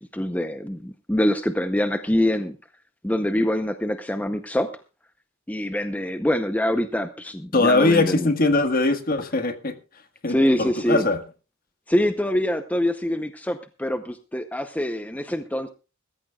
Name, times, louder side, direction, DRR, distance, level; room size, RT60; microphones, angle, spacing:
voice 1, 0.1-2.6 3.0-4.7 5.5-8.3 10.3-11.1 11.9-15.7, left 1 dB, 5° left, 8 dB, 0.7 m, -24 dB
voice 2, 7.5-9.7 10.2-11.2, left 2 dB, 45° left, 8 dB, 1.5 m, -21 dB
22.0 x 14.0 x 2.3 m, 0.32 s
head